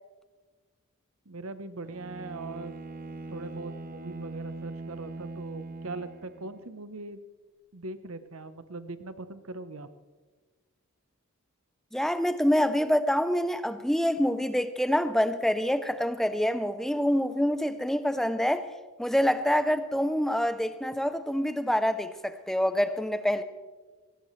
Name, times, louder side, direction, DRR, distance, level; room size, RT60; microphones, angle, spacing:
voice 1, 1.2-2.8 3.3-7.2 7.7-9.9, right 3 dB, 70° right, 11 dB, 1.0 m, -40 dB
Bowed string instrument, 1.8-6.7, right 2 dB, 40° right, 0.9 m, -41 dB
voice 2, 11.9-18.7 19.0-23.4, equal, ahead, 10 dB, 0.7 m, -26 dB
21.0 x 18.0 x 3.3 m, 1.3 s
head